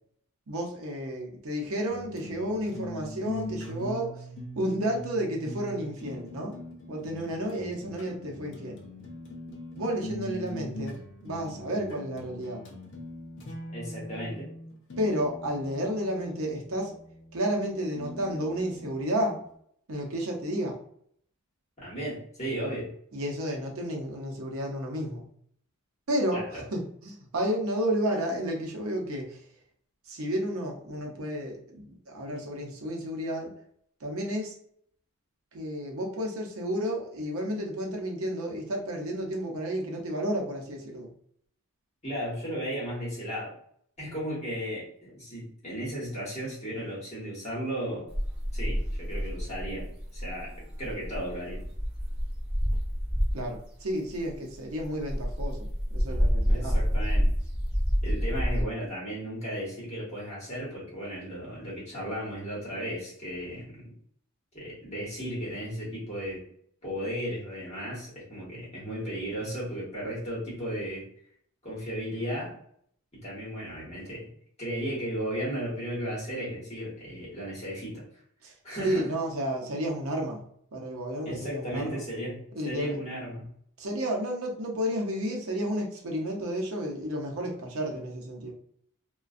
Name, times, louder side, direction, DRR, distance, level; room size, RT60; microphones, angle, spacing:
voice 1, 0.5-4.3 4.6-6.5 6.9-8.8 9.7-11.0 11.2-12.6 15.0-17.0 17.3-19.4 19.9-20.8 23.1-25.3 26.1-29.4 30.1-33.5 34.0-34.5 35.5-41.1 53.3-56.8 78.4-78.5 78.8-80.4 80.7-82.0 82.6-83.0 83.8-88.5, equal, 70° right, 1 dB, 0.6 m, -31 dB
sound 1, 1.9-19.5, equal, 55° left, 0.5 m, -42 dB
voice 2, 13.7-14.5 21.8-22.9 26.3-26.6 42.0-43.5 44.0-48.1 48.5-49.9 50.1-50.5 50.8-51.6 56.5-57.3 58.0-63.9 64.5-66.4 66.8-71.0 71.6-72.5 73.1-74.3 74.6-78.0 78.6-79.1 81.2-82.4 82.6-83.5, equal, 30° left, -6 dB, 1.2 m, -35 dB
sound 2, 48.1-53.6 54.1-58.6, equal, 5° right, 0.4 m, -28 dB
2.4 x 2.2 x 2.4 m, 0.65 s
head